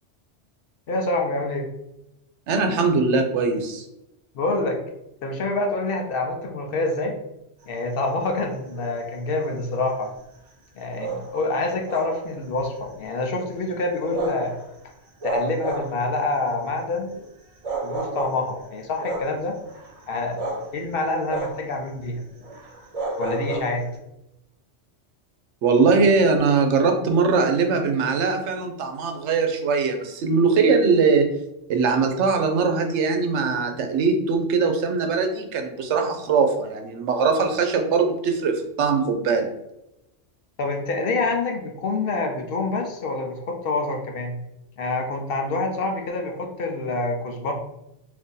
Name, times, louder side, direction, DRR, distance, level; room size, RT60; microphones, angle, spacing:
voice 1, 0.9-1.7 4.3-4.8 5.2-7.2 7.7-10.1 10.8-14.6 15.2-17.1 17.8-19.6 20.1-20.4 20.7-22.2 23.2-23.9 40.6-44.4 44.8-47.5, left 2 dB, 60° left, 3 dB, 0.7 m, -26 dB
voice 2, 2.5-3.8 25.6-31.3 31.7-39.5, right 4 dB, 80° right, 5 dB, 0.9 m, -21 dB
sound 1, 7.7-8.0 8.5-8.9 9.3-9.7 11.0-11.4 11.8-12.6 12.9-13.2 14.0-14.6 15.2-16.2 17.1-17.2 17.6-18.5 19.0-20.8 21.3-21.7 22.0-22.1 22.4-24.0, right 2 dB, 45° right, 0.5 m, -31 dB
2.7 x 2.7 x 3.7 m, 0.86 s
omnidirectional pair, 1.2 m